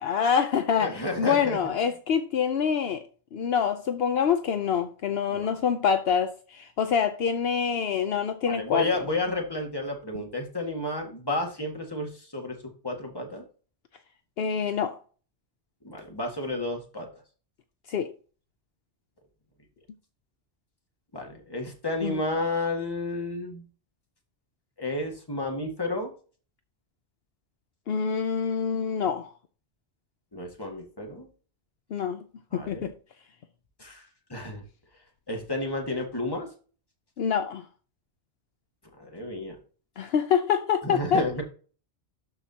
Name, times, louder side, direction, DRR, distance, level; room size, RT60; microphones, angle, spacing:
voice 1, 0.0-3.0 3.3-8.9 14.4-15.0 17.9-18.1 22.0-22.2 27.9-29.3 31.9-32.2 32.5-32.9 37.2-37.6 40.0-41.3, left 7 dB, 70° left, 0.9 m, -26 dB
voice 2, 0.8-1.6 5.3-5.6 8.5-12.6 12.8-13.4 15.8-17.1 21.1-23.6 24.8-26.1 30.3-31.3 32.5-32.9 33.8-34.6 35.3-36.5 39.0-39.6 40.8-41.4, left 1 dB, 20° left, 1.8 m, -31 dB
12.0 x 4.9 x 2.8 m
omnidirectional pair, 1.1 m